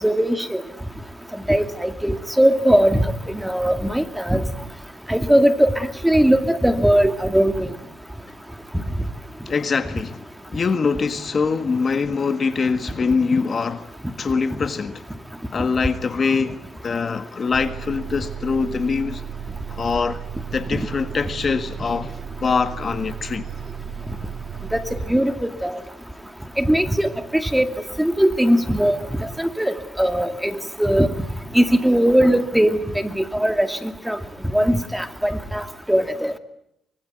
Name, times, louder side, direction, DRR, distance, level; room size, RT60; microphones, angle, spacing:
voice 1, 0.0-0.6 1.5-4.4 5.1-7.7 24.7-25.8 26.6-27.7 28.0-29.0 29.4-30.5 30.8-31.1 31.5-34.2 34.5-35.6 35.9-36.3, equal, 5° right, 2.3 m, -19 dB
voice 2, 9.4-10.3 10.5-13.9 14.2-15.0 15.5-19.2 19.7-20.2 20.5-23.5, left 5 dB, 40° left, 1.6 m, -23 dB
Bus, 17.5-25.1, right 8 dB, 60° right, 4.8 m, -34 dB
24.5 x 24.0 x 9.2 m
cardioid pair, 90°, 0 cm